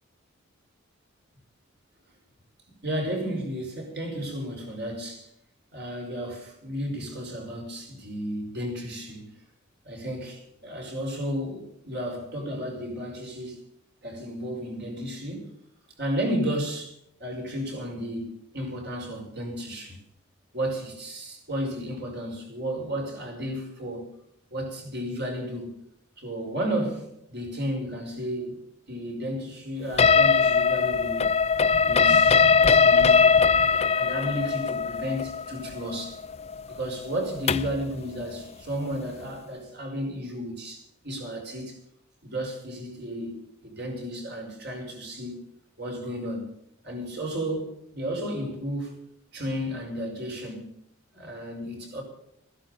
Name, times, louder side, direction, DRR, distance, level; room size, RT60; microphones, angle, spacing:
voice 1, 2.7-5.3 5.7-9.3 9.9-13.6 14.0-15.5 16.0-16.9 17.2-20.0 20.5-24.1 24.5-25.8 26.2-28.6 28.9-31.3 31.8-36.2 36.7-41.8 42.2-43.4 43.8-45.4 45.8-46.5 46.8-48.9 49.3-50.8 51.1-52.0, equal, 55° right, 5.7 m, -33 dB
sound 1, 30.0-37.8, left 5 dB, 30° left, 0.5 m, -20 dB
15.0 x 12.0 x 6.8 m
head